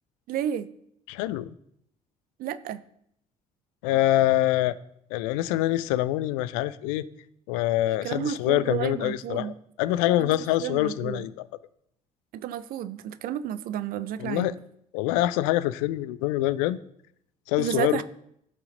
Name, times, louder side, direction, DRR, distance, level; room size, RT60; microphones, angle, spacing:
voice 1, 0.3-0.7 2.4-2.8 7.9-9.5 10.2-10.3 10.6-11.3 12.3-14.6 17.6-18.0, right 10 dB, 50° right, 14 dB, 0.7 m, -31 dB
voice 2, 1.1-1.5 3.8-4.8 5.1-7.0 7.5-11.5 14.2-14.5 14.9-16.8 17.5-18.0, left 15 dB, 60° left, 15 dB, 0.5 m, -25 dB
15.0 x 5.7 x 4.0 m, 0.73 s
figure-of-eight pair, 50°, 19 cm